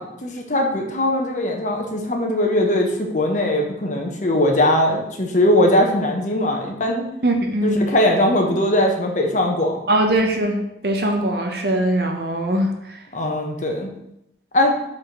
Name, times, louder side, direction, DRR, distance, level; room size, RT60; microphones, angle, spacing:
voice 1, 0.0-7.0 7.6-9.8 13.1-13.9 14.5-14.7, left 1 dB, 45° left, 2 dB, 1.1 m, -20 dB
voice 2, 7.2-7.8 9.9-10.6 10.8-13.0, right 1 dB, 60° right, 3 dB, 1.0 m, -21 dB
4.9 x 4.4 x 6.0 m, 0.81 s
head